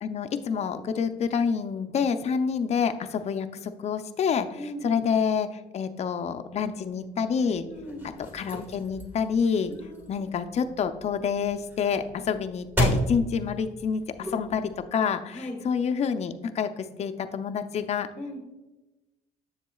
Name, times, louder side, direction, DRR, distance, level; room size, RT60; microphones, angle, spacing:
voice 1, 0.0-4.5 4.8-7.6 8.3-9.7 10.1-15.4 15.6-18.1, left 6 dB, 40° left, 9 dB, 0.5 m, -27 dB
voice 2, 4.6-4.9 7.6-8.1 9.7-10.2 15.3-15.6 18.2-18.4, equal, 15° left, 1 dB, 1.3 m, -38 dB
sound 1, 7.7-14.8, equal, 10° right, 1.5 m, -33 dB
7.2 x 7.2 x 2.3 m, 1.1 s
cardioid pair, 110°, 17 cm